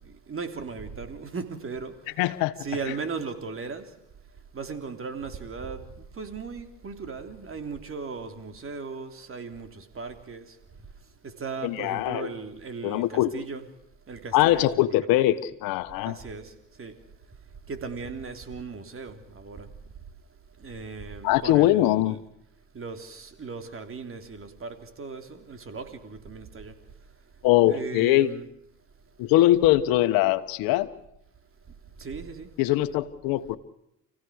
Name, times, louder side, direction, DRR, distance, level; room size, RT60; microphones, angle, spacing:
voice 1, 0.0-2.1 2.6-3.9 4.5-10.6 11.2-13.7 14.1-14.7 15.1-15.2 16.0-17.0 17.7-19.7 20.6-21.9 22.7-26.8 27.7-28.4 32.0-32.5, right 4 dB, 40° right, 3.4 m, -37 dB
voice 2, 2.2-2.6 11.6-12.3 12.8-13.3 14.3-16.2 21.2-22.1 27.4-28.3 29.2-30.9 32.6-33.6, left 15 dB, 80° left, 1.4 m, -22 dB
29.0 x 16.5 x 6.5 m
supercardioid pair, 80°, 34 cm